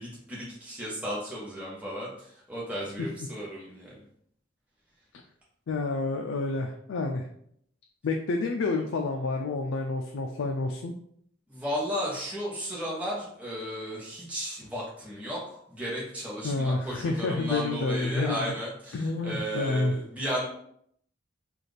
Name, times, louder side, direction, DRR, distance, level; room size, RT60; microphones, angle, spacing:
voice 1, 0.0-2.1 2.5-3.9 11.5-20.4, equal, 5° right, -6 dB, 0.9 m, -34 dB
voice 2, 5.7-7.3 8.0-10.9 16.4-18.5 18.9-20.0, left 3 dB, 85° left, 3 dB, 0.4 m, -29 dB
4.0 x 2.4 x 3.3 m, 0.68 s
head